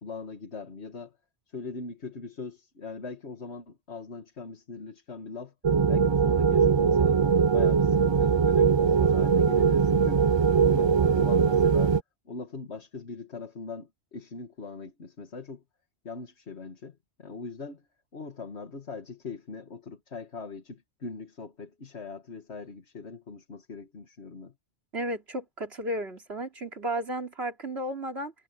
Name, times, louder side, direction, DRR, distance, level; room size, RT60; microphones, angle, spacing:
voice 1, 0.0-1.2 1.5-5.5 5.9-7.2 7.5-10.2 10.6-12.0 12.3-15.6 16.0-17.9 18.1-24.5, left 4 dB, 80° left, 2.2 m, -41 dB
sound 1, 5.6-12.0, right 6 dB, 45° right, 0.3 m, -21 dB
voice 2, 24.9-28.3, right 1 dB, 70° right, 3.6 m, -33 dB
omnidirectional pair, 1.1 m